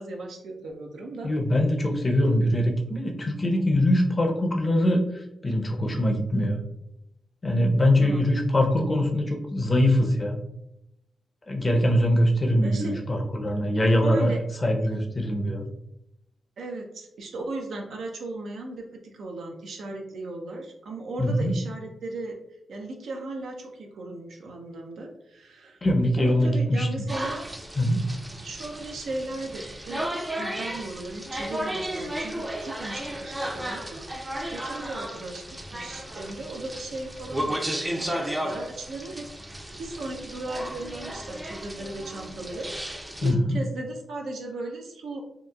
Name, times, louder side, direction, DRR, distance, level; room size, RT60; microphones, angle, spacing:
voice 1, 0.0-1.3 8.0-8.2 12.6-13.0 14.0-14.4 16.6-18.8 19.1-22.4 22.7-25.8 26.2-27.5 28.4-30.0 30.3-45.2, right 2 dB, 75° right, 2 dB, 0.4 m, -37 dB
voice 2, 1.2-6.6 7.4-10.4 11.5-14.3 14.6-15.7 21.2-21.6 25.8-26.9 27.8-28.0 43.2-43.6, left 1 dB, 35° left, 2 dB, 0.6 m, -23 dB
sound 1, 27.1-43.3, right 1 dB, 20° right, 0.5 m, -34 dB
2.8 x 2.1 x 2.3 m, 0.83 s
cardioid pair, 55°, 0 cm